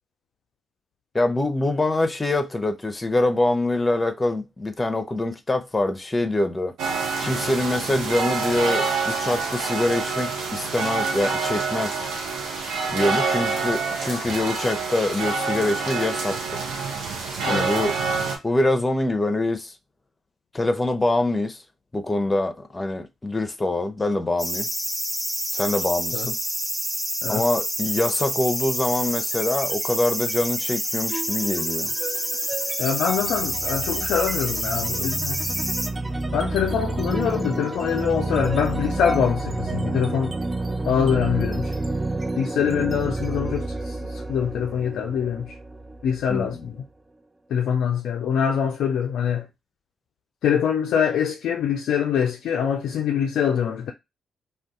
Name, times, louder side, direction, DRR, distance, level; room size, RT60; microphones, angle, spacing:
voice 1, 1.1-6.7 7.2-12.0 12.9-16.6 17.5-17.9 18.4-19.7 20.5-21.6 21.9-24.7 25.5-26.4 27.3-31.9 46.3-46.5, left 2 dB, 25° left, 0.7 m, -24 dB
sound 1, 6.8-18.4, right 4 dB, 75° right, 0.8 m, -27 dB
sound 2, 24.4-35.9, equal, 10° right, 1.1 m, -28 dB
sound 3, 29.3-29.8 30.2-46.8, right 2 dB, 25° right, 0.4 m, -30 dB
voice 2, 32.8-35.4 36.3-40.4 40.9-41.8 42.4-45.6 46.0-46.8 47.5-49.5 50.4-53.9, left 8 dB, 75° left, 0.3 m, -24 dB
2.6 x 2.3 x 3.6 m
hypercardioid pair, 45°, 0 cm